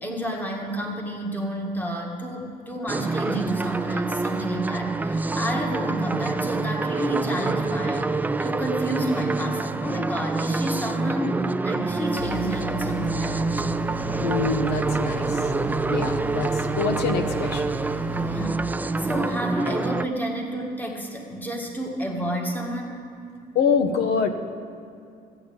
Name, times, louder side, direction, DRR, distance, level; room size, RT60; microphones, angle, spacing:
voice 1, 0.0-13.6 14.0-14.3 18.2-18.6 19.0-23.1, equal, 10° left, 1 dB, 2.0 m, -30 dB
sound 1, 2.9-20.1, right 3 dB, 10° right, 0.3 m, -26 dB
sound 2, 12.2-18.5, left 1 dB, 55° left, 1.0 m, -35 dB
voice 2, 14.2-15.5 15.9-17.8 23.5-24.3, left 6 dB, 80° left, 8 dB, 1.2 m, -25 dB
14.0 x 8.8 x 8.0 m, 2.4 s
cardioid pair, 110°, 17 cm